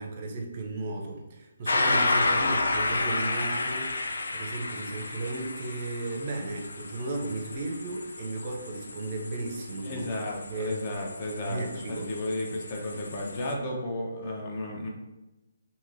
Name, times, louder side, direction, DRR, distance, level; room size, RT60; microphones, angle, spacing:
voice 1, 0.0-10.1 10.5-10.8 11.5-12.1, right 2 dB, 40° right, 1 dB, 0.5 m, -35 dB
sound 1, 1.7-13.5, left 2 dB, 90° left, 0.3 m, -31 dB
voice 2, 9.8-14.9, left 1 dB, 35° left, 0 dB, 0.6 m, -33 dB
3.0 x 2.7 x 2.5 m, 1.0 s
hypercardioid pair, 155°, 0 cm